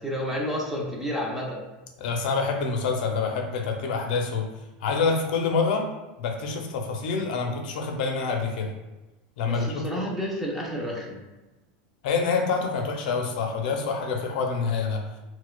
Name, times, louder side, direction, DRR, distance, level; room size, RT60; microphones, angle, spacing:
voice 1, 0.0-1.6 9.5-11.2, equal, 5° right, -3 dB, 0.4 m, -30 dB
voice 2, 2.0-4.5 4.8-5.9 6.2-8.7 9.4-9.8 12.0-15.0, left 4 dB, 70° left, 3 dB, 0.5 m, -26 dB
4.5 x 2.1 x 2.2 m, 1.1 s
supercardioid pair, 175°, 5 cm